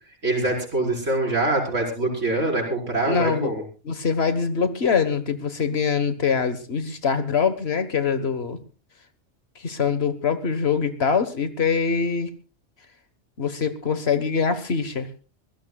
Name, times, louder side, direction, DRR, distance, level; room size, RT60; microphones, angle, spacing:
voice 1, 0.2-3.6, right 2 dB, 85° right, -1 dB, 5.2 m, -24 dB
voice 2, 3.0-3.5 3.8-8.6 9.6-12.3 13.4-15.1, left 6 dB, 60° left, 11 dB, 1.5 m, -23 dB
25.0 x 16.5 x 2.3 m, 0.34 s
omnidirectional pair, 1.2 m